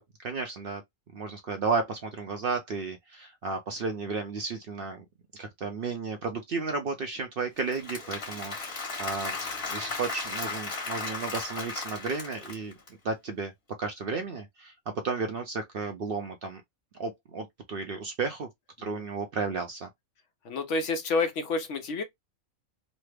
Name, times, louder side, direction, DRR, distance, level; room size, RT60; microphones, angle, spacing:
voice 1, 0.2-0.8 1.1-5.0 5.3-9.4 9.7-12.7 13.0-13.5 13.8-14.7 15.0-16.6 16.9-18.5 18.8-19.9, right 4 dB, 60° right, 0.6 m, -33 dB
Applause / Crowd, 7.6-12.9, left 4 dB, 45° left, 1.6 m, -36 dB
voice 2, 20.4-22.0, left 3 dB, 70° left, 1.0 m, -29 dB
3.2 x 2.0 x 3.2 m
omnidirectional pair, 1.4 m